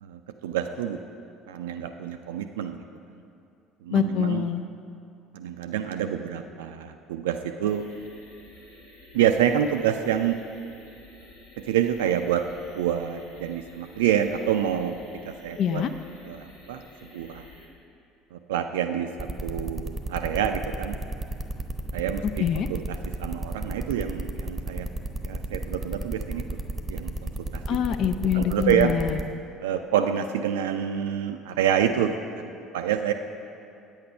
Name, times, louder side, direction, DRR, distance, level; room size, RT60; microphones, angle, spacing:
voice 1, 0.0-1.0 1.5-2.8 3.8-4.5 5.3-7.9 9.1-10.4 11.6-12.5 12.7-15.0 15.2-15.8 16.2-16.8 17.1-17.4 18.3-21.0 21.9-24.9 25.2-26.6 26.9-27.6 28.3-28.9 29.6-33.1, right 9 dB, 70° right, 6 dB, 0.3 m, -27 dB
voice 2, 3.9-4.6 15.6-15.9 22.4-22.7 27.7-29.2, left 8 dB, 50° left, 9 dB, 0.4 m, -25 dB
sound 1, 7.7-17.7, left 2 dB, 85° left, 2.0 m, -50 dB
sound 2, 19.2-29.2, right 2 dB, 15° right, 0.9 m, -32 dB
8.8 x 8.5 x 5.3 m, 2.6 s
figure-of-eight pair, 60°, 0 cm